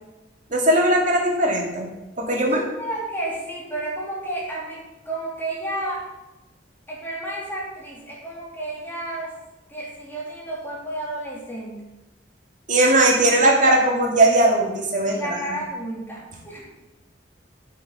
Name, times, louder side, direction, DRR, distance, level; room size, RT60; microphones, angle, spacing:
voice 1, 0.5-1.9 2.2-2.6 12.7-15.4, right 1 dB, 45° right, 0 dB, 2.3 m, -19 dB
voice 2, 2.3-6.0 6.9-9.3 9.7-11.9 15.1-16.7, right 1 dB, 10° left, -4 dB, 3.2 m, -32 dB
9.2 x 7.9 x 6.0 m, 1.0 s
head